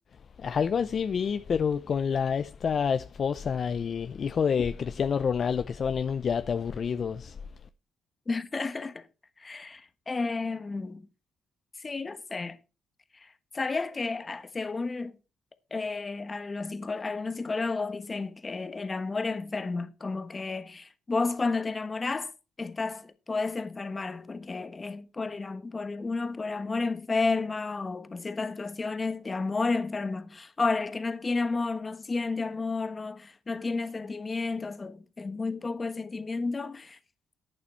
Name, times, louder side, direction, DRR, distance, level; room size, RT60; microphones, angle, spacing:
voice 1, 0.4-7.4, left 6 dB, 50° left, 0.6 m, -28 dB
voice 2, 8.3-9.1 9.4-11.1 11.8-12.6 13.5-15.2 15.7-22.3 22.6-37.0, left 3 dB, 30° left, 1.3 m, -31 dB
11.5 x 8.8 x 4.5 m
cardioid pair, 90°, 0 cm